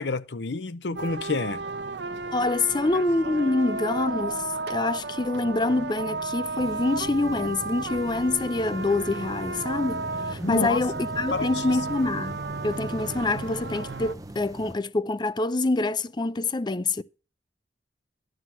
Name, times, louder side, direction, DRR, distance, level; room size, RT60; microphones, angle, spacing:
voice 1, 0.0-1.6 10.4-10.8 11.3-11.6, left 3 dB, 70° left, 0.7 m, -29 dB
sound 1, 1.0-14.1, right 3 dB, 70° right, 0.8 m, -33 dB
voice 2, 2.3-17.0, left 2 dB, 25° left, 0.5 m, -26 dB
sound 2, 6.5-14.7, right 1 dB, 20° right, 0.7 m, -42 dB
11.5 x 5.8 x 6.1 m
head